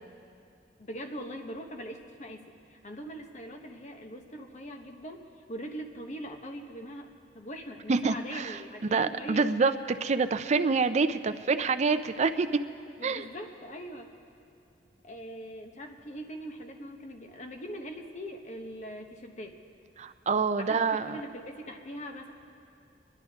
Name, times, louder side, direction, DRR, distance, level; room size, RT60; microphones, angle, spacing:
voice 1, 0.8-7.1 7.3-9.8 13.0-14.1 15.0-19.6 20.6-22.3, equal, 45° left, 3 dB, 1.2 m, -42 dB
voice 2, 7.9-8.6 8.9-12.6 13.0-13.3 20.0-21.2, right 4 dB, 40° right, 11 dB, 0.5 m, -27 dB
24.5 x 11.0 x 3.6 m, 2.5 s
head